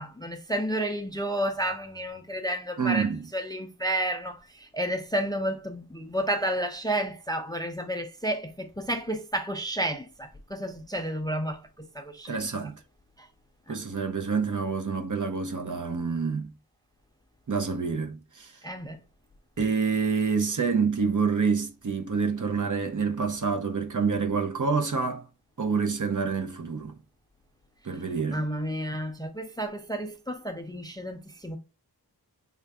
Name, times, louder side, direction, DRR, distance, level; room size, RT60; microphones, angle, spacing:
voice 1, 0.0-3.1 3.3-11.6 12.0-12.7 13.7-13.8 18.6-19.0 28.3-31.6, right 1 dB, 10° left, 0.4 m, -31 dB
voice 2, 2.8-3.3 12.2-12.8 13.7-16.5 17.5-18.5 19.6-25.2 25.6-27.0 27.8-28.5, right 5 dB, 50° right, 0.7 m, -27 dB
3.2 x 2.4 x 3.4 m
wide cardioid pair, 65°, 39 cm